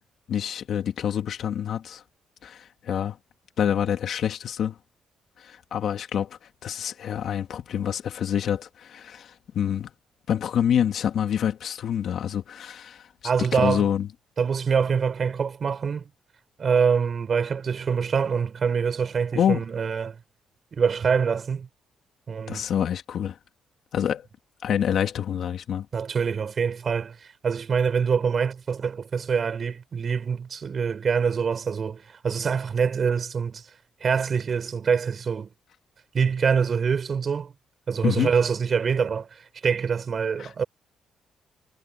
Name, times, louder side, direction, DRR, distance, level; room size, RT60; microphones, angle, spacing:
voice 1, 0.3-2.0 2.4-3.2 3.6-4.8 5.4-9.9 10.3-13.1 13.5-14.1 19.3-19.6 22.5-23.4 23.9-24.3 24.6-25.9 38.0-38.3 40.4-40.6, left 9 dB, 65° left, 2.9 m, -27 dB
voice 2, 13.2-13.9 14.4-16.1 16.6-20.2 20.7-21.7 22.3-22.7 25.9-33.7 34.0-35.5 36.1-37.5 37.9-40.6, right 6 dB, 45° right, 5.9 m, -25 dB
cardioid pair, 90°, 0 cm